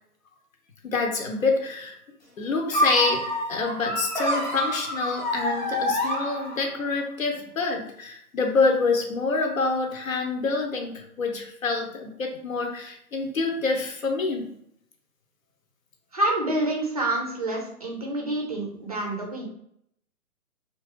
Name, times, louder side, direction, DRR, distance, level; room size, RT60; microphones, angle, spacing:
voice 1, 0.8-2.0 2.4-14.5, left 3 dB, 60° left, 3 dB, 0.8 m, -27 dB
sound 1, 2.7-6.9, left 1 dB, 30° left, 0.4 m, -27 dB
voice 2, 16.1-19.4, right 1 dB, 25° right, -1 dB, 0.5 m, -27 dB
3.0 x 2.5 x 3.0 m, 0.73 s
figure-of-eight pair, 130°, 46 cm